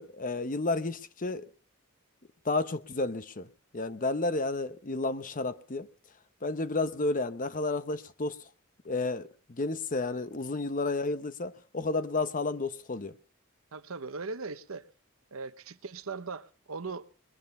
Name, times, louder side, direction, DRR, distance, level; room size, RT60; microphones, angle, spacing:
voice 1, 0.0-1.5 2.4-3.5 3.7-5.9 6.4-8.4 8.8-13.1, left 3 dB, 40° left, 0.9 m, -31 dB
voice 2, 13.7-14.9 15.3-17.1, right 4 dB, 85° right, 1.0 m, -39 dB
21.5 x 9.1 x 5.4 m
head